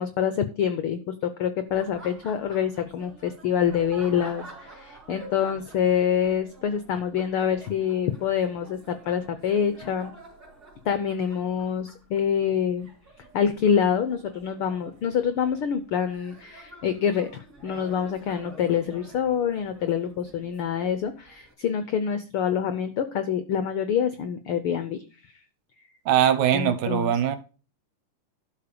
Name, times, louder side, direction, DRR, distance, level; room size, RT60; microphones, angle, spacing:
voice 1, 0.0-10.1 10.8-12.9 13.3-25.0 26.5-27.1, left 8 dB, 80° left, 1.2 m, -26 dB
Laughter, 1.7-21.5, right 2 dB, 30° right, 3.2 m, -48 dB
voice 2, 26.1-27.4, right 9 dB, 75° right, 2.4 m, -21 dB
12.0 x 4.9 x 6.8 m
omnidirectional pair, 3.5 m